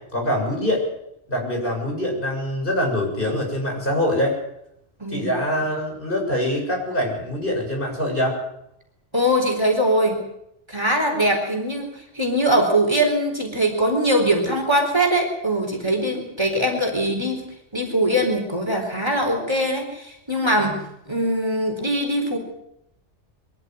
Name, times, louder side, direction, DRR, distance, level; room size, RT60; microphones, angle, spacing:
voice 1, 0.1-0.8 1.3-4.4 5.1-8.4, left 1 dB, 50° left, 0 dB, 7.7 m, -24 dB
voice 2, 9.1-10.2 10.7-17.4 17.7-22.4, right 1 dB, 20° right, 2 dB, 4.2 m, -22 dB
23.5 x 14.0 x 9.6 m, 0.80 s
omnidirectional pair, 1.2 m